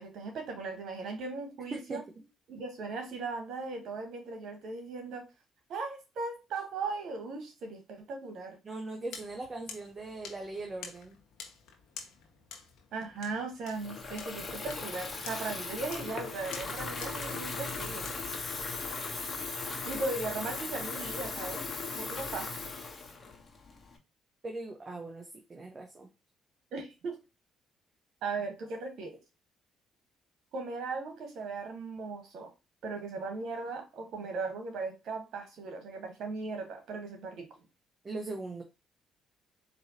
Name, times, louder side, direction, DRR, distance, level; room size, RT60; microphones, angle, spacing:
voice 1, 0.0-2.0 2.5-5.2 5.7-8.6 12.9-18.0 19.8-21.6 21.9-22.5 26.7-27.2 28.2-29.2 30.5-32.5 32.8-37.5, right 3 dB, 70° right, 5 dB, 1.6 m, -38 dB
voice 2, 8.6-11.2 24.4-26.1 38.0-38.6, right 2 dB, 35° right, 2 dB, 1.0 m, -40 dB
sound 1, 9.1-18.2, left 6 dB, 75° left, 1.0 m, -50 dB
Water tap faucet / Fill (with liquid), 13.7-24.0, left 4 dB, 35° left, 1.2 m, -38 dB
4.3 x 3.0 x 2.9 m, 0.27 s
supercardioid pair, 60°, 0 cm